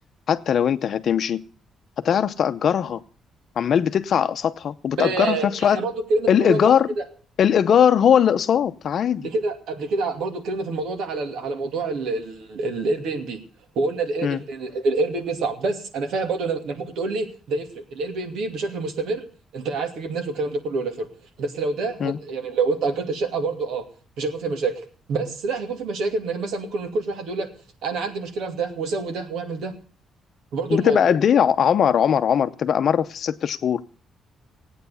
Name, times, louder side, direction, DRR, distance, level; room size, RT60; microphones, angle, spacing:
voice 1, 0.3-1.4 2.0-3.0 3.6-5.8 6.3-6.9 7.4-9.3 14.2-14.4 22.0-22.2 30.7-33.9, left 8 dB, 45° left, 0.7 m, -20 dB
voice 2, 5.0-7.0 9.2-13.4 13.8-19.2 19.5-21.1 21.4-23.8 24.2-24.8 25.1-27.5 27.8-29.7 30.5-31.1, right 3 dB, 80° right, 2.5 m, -27 dB
17.5 x 9.0 x 7.0 m
cardioid pair, 165°, 0 cm